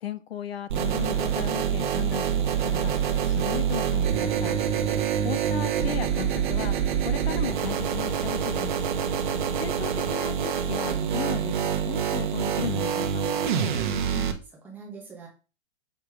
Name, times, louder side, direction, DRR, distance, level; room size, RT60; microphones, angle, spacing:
voice 1, 0.0-4.6 5.2-8.7 9.6-13.2, left 10 dB, 60° left, 14 dB, 0.6 m, -36 dB
sound 1, 0.7-14.3, right 8 dB, 45° right, 1.0 m, -26 dB
voice 2, 14.1-15.3, right 2 dB, 5° right, -2 dB, 0.9 m, -42 dB
6.7 x 2.9 x 4.8 m, 0.33 s
hypercardioid pair, 170°, 35 cm